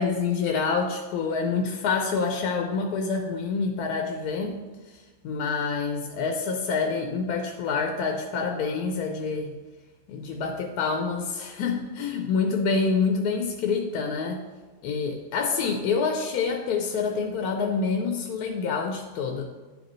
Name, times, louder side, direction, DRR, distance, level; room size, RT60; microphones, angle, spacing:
voice 1, 0.0-4.6 4.9-9.6 10.1-14.4 14.8-19.5, left 5 dB, 80° left, 3 dB, 1.2 m, -27 dB
10.0 x 5.1 x 3.1 m, 1.3 s
omnidirectional pair, 1.7 m